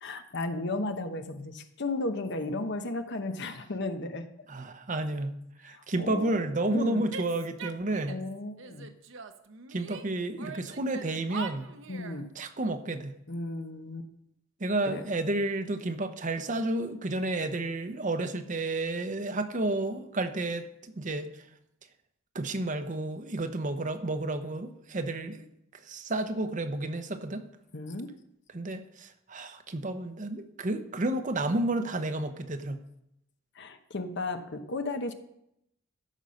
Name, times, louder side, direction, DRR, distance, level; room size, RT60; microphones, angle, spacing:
voice 1, 0.0-4.3 5.6-7.1 8.1-8.9 11.9-12.3 13.3-14.1 14.9-15.0 27.7-28.1 33.5-35.1, left 2 dB, 55° left, 8 dB, 1.0 m, -34 dB
voice 2, 4.5-8.2 9.7-11.7 12.4-13.1 14.6-21.3 22.3-25.5 25.8-27.4 28.5-32.8, right 2 dB, 40° right, 9 dB, 0.8 m, -31 dB
Female speech woman speaking / Yell, 7.1-8.3 8.6-10.1 10.4-12.2, right 4 dB, 65° right, 0.9 m, -42 dB
14.0 x 5.6 x 6.4 m, 0.79 s
head